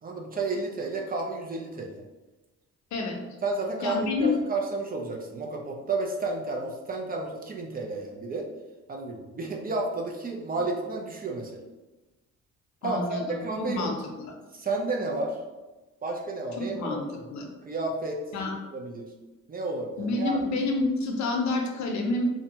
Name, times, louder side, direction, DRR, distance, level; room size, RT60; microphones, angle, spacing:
voice 1, 0.0-2.0 3.4-8.5 8.9-11.6 12.8-13.9 14.5-15.4 16.0-17.0 17.6-18.2 18.7-19.1 19.5-20.4, right 3 dB, 30° right, 0 dB, 0.4 m, -31 dB
voice 2, 3.8-4.3 12.8-14.0 16.6-17.0 17.3-17.5 18.3-18.5 20.0-22.3, left 2 dB, 70° left, 2 dB, 0.6 m, -28 dB
2.5 x 2.2 x 2.7 m, 1.1 s
cardioid pair, 90°, 30 cm